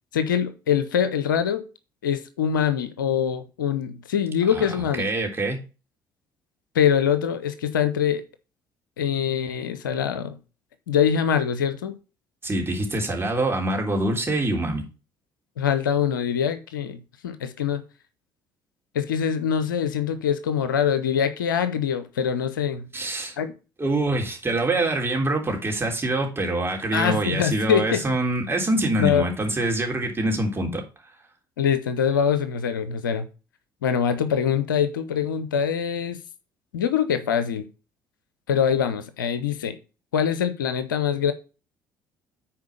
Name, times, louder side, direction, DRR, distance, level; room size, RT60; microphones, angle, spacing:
voice 1, 0.1-1.6 2.0-5.1 6.7-8.2 9.0-10.4 10.9-11.9 15.6-17.8 18.9-22.9 23.4-23.5 26.9-28.0 28.9-29.3 31.6-33.3 33.8-36.2 36.7-37.7 38.5-39.8 40.1-41.3, left 8 dB, 85° left, 0.7 m, -24 dB
voice 2, 4.5-5.6 12.4-14.8 22.9-23.3 23.8-30.8, right 2 dB, 20° right, 3.3 m, -25 dB
9.4 x 4.5 x 5.0 m
hypercardioid pair, 55°, 11 cm